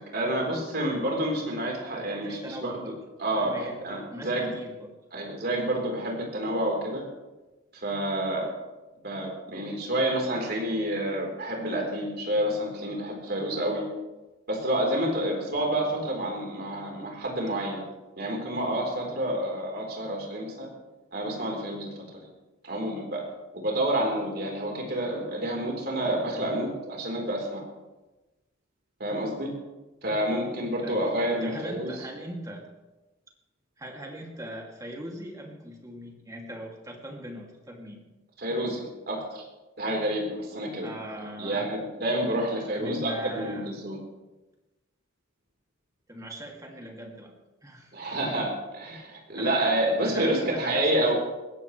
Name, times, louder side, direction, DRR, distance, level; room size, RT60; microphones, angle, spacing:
voice 1, 0.1-2.7 3.2-4.5 5.1-7.0 7.8-8.5 9.0-13.9 14.5-17.8 18.2-20.7 21.1-22.2 22.6-23.2 23.6-27.6 29.0-29.5 30.0-31.9 38.4-39.4 39.8-40.9 41.4-44.0 47.9-51.1, right 1 dB, 55° right, -1 dB, 4.1 m, -29 dB
voice 2, 1.9-3.0 3.3-3.8 4.1-4.9 17.5-17.9 26.3-26.7 30.8-31.0 31.4-32.7 33.8-38.0 40.8-41.7 42.7-44.1 46.1-47.3 47.6-48.0 49.4-49.7 50.0-51.1, equal, 20° right, 0 dB, 2.6 m, -40 dB
21.0 x 16.0 x 3.3 m, 1.1 s
head